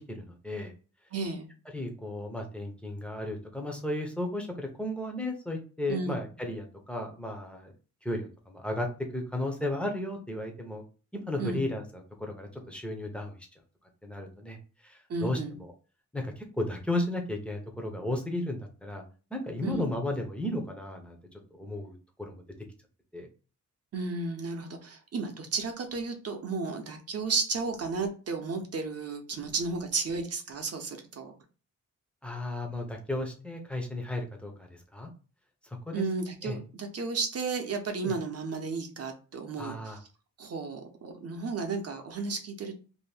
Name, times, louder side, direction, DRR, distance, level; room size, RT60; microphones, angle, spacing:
voice 1, 0.1-0.7 1.7-7.7 8.0-8.9 9.1-10.8 11.1-13.5 14.0-14.6 14.8-15.7 16.1-19.0 19.3-21.2 21.5-22.4 23.1-23.3 32.2-35.1 35.9-36.0 36.4-36.6 38.0-38.1 39.6-40.0, left 1 dB, 5° left, 2 dB, 0.6 m, -34 dB
voice 2, 1.1-1.5 5.9-6.2 11.4-11.6 15.1-15.6 19.6-19.8 23.9-31.3 35.9-40.0 40.4-42.7, right 4 dB, 50° right, 5 dB, 0.6 m, -33 dB
2.7 x 2.6 x 3.3 m, 0.36 s
wide cardioid pair, 175°, 31 cm